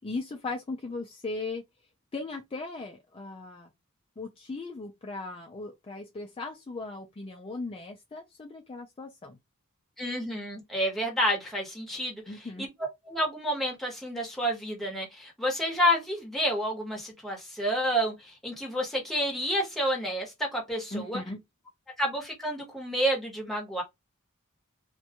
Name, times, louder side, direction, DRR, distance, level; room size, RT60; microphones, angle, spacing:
voice 1, 0.0-1.6 2.1-3.7 4.2-9.4 12.3-12.7 20.9-21.4, left 3 dB, 25° left, 0.4 m, -38 dB
voice 2, 10.0-12.2 12.6-21.2 22.0-23.8, equal, ahead, 0.9 m, -29 dB
2.5 x 2.2 x 2.8 m
head